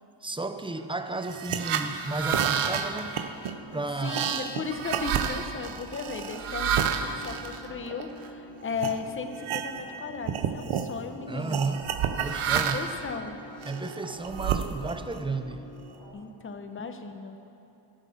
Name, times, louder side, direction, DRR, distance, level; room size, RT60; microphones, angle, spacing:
voice 1, 0.2-3.2 3.7-4.4 11.3-12.9 13.6-15.7, right 3 dB, 10° right, 9 dB, 0.4 m, -33 dB
sound 1, 1.2-8.3 8.8-9.0 9.3-10.0 10.2-10.9 11.5-13.0 13.6-15.2, right 8 dB, 80° right, 0.7 m, -30 dB
sound 2, 3.5-16.1, equal, 45° left, 3.0 m, -48 dB
voice 2, 3.7-11.7 12.5-13.4 16.1-17.4, left 5 dB, 25° left, 6 dB, 0.7 m, -36 dB
12.5 x 6.4 x 6.9 m, 2.8 s
wide cardioid pair, 100°, 50 cm